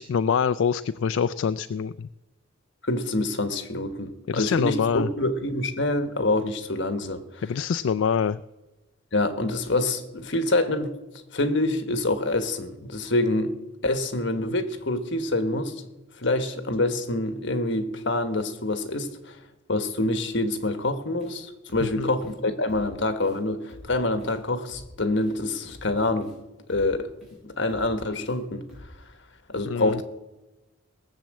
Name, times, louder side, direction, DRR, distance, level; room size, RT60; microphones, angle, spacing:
voice 1, 0.0-2.1 4.3-5.1 7.4-8.4 21.8-22.1 29.7-30.0, left 6 dB, 80° left, 0.4 m, -25 dB
voice 2, 2.8-7.4 9.1-10.9 11.3-13.6 13.8-15.8 16.2-19.4 19.7-26.3 26.7-28.6 29.5-30.0, left 2 dB, 65° left, 1.4 m, -26 dB
sound 1, 21.2-21.4 21.7-21.9 22.2-22.4 22.7-22.9 23.2-23.4 23.7-23.9 24.2-24.4 24.7-24.9 25.2-25.4 25.7-25.9 26.2-26.4 26.7-26.9 27.2-27.4 27.7-27.9 28.2-28.4 28.7-28.9, equal, ahead, 6.3 m, -48 dB
18.5 x 7.4 x 7.5 m
head